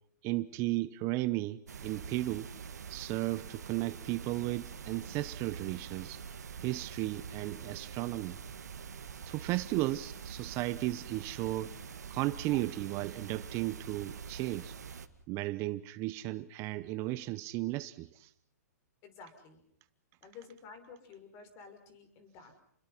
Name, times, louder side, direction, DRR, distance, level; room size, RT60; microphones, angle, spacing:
voice 1, 0.2-2.5 2.9-6.2 6.6-8.4 9.3-11.8 12.1-14.7 15.3-18.3, right 18 dB, 30° right, 0.9 m, -34 dB
sound 1, 1.7-15.1, right 6 dB, 85° right, 2.2 m, -45 dB
voice 2, 19.0-19.6 20.2-22.6, left 5 dB, 30° left, 6.1 m, -52 dB
30.0 x 22.0 x 5.8 m
hypercardioid pair, 140°, 9 cm